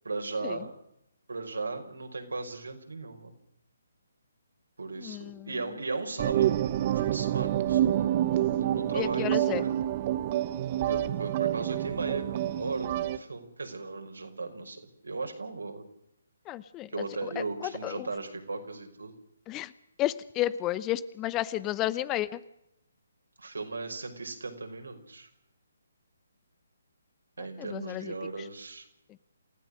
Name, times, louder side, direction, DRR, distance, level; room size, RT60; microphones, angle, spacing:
voice 1, 0.0-0.7 1.3-3.3 4.8-8.2 8.6-9.7 10.9-15.8 16.9-19.1 23.4-25.3 27.4-28.9, right 3 dB, 75° right, 4 dB, 5.2 m, -37 dB
voice 2, 5.0-5.5 8.9-9.7 16.5-16.9 17.2-18.1 19.5-19.7 20.0-22.4 27.4-28.1, left 14 dB, 20° left, 18 dB, 0.8 m, -32 dB
sound 1, 6.2-13.2, right 12 dB, 35° right, 1.0 m, -28 dB
28.5 x 16.0 x 6.5 m, 0.79 s
figure-of-eight pair, 140°, 0 cm